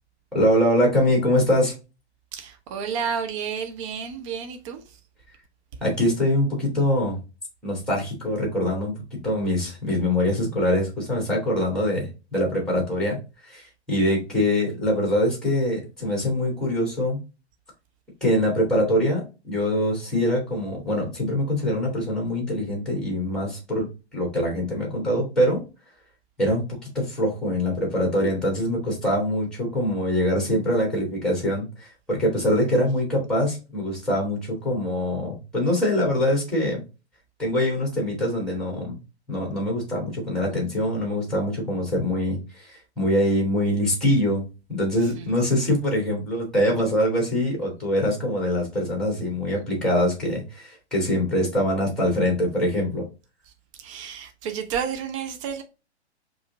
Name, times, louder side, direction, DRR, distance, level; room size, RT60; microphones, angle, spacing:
voice 1, 0.3-1.7 5.8-7.2 7.6-13.2 13.5-17.2 18.2-23.9 24.1-25.6 26.4-26.6 26.9-36.8 37.4-38.9 39.3-44.4 44.7-53.0, left 1 dB, ahead, 2.0 m, -24 dB
voice 2, 2.3-5.0 45.0-45.3 53.5-53.6 53.8-55.6, right 7 dB, 30° right, 0.5 m, -31 dB
4.9 x 2.5 x 3.8 m
figure-of-eight pair, 115°, 33 cm